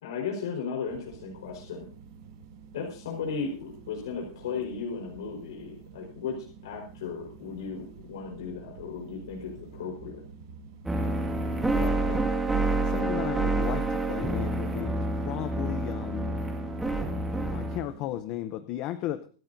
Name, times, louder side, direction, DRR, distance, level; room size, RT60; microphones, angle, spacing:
voice 1, 0.0-1.9 2.7-6.4 6.6-10.2, left 5 dB, 90° left, -1 dB, 4.6 m, -35 dB
sound 1, 0.9-18.2, right 6 dB, 50° right, 7.2 m, -49 dB
sound 2, 10.8-17.8, right 2 dB, 5° right, 2.0 m, -28 dB
voice 2, 11.7-12.2 12.8-16.4 17.4-19.3, left 13 dB, 30° left, 11 dB, 0.7 m, -35 dB
25.5 x 12.0 x 2.7 m, 0.39 s
supercardioid pair, 175°, 2 cm